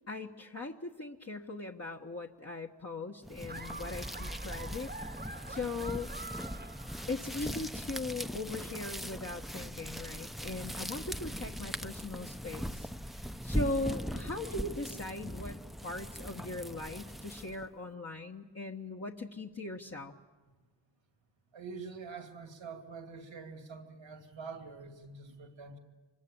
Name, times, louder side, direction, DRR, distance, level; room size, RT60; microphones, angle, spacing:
voice 1, 0.1-4.9 5.5-6.1 7.1-20.1, left 2 dB, 35° left, 0 dB, 1.3 m, -39 dB
sound 1, 3.2-17.7, equal, ahead, 0.9 m, -40 dB
Laughter, 3.5-7.5, right 3 dB, 20° right, 1.2 m, -46 dB
voice 2, 21.5-25.8, right 5 dB, 85° right, 5 dB, 2.6 m, -45 dB
25.5 x 22.0 x 8.7 m, 1.3 s
cardioid pair, 45°, 44 cm